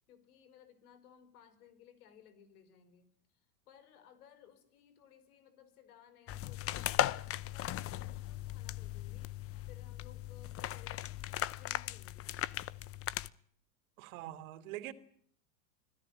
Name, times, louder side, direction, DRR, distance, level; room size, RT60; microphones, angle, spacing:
voice 1, 0.1-3.1 3.7-7.2 7.5-9.3 9.7-12.6, left 9 dB, 75° left, 5.1 m, -60 dB
sound 1, 6.3-13.3, left 13 dB, 30° left, 0.9 m, -38 dB
voice 2, 14.0-14.9, right 14 dB, 65° right, 3.1 m, -44 dB
25.5 x 17.0 x 9.0 m
supercardioid pair, 125°, 45 cm